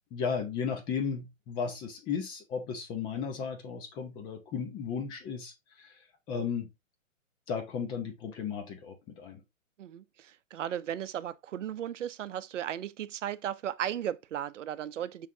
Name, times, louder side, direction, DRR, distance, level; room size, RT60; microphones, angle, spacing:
voice 1, 0.1-6.7 7.5-9.4, left 6 dB, 10° left, 0.6 m, -35 dB
voice 2, 9.8-15.3, right 10 dB, 70° right, 0.7 m, -36 dB
6.3 x 5.8 x 2.7 m
hypercardioid pair, 155°, 38 cm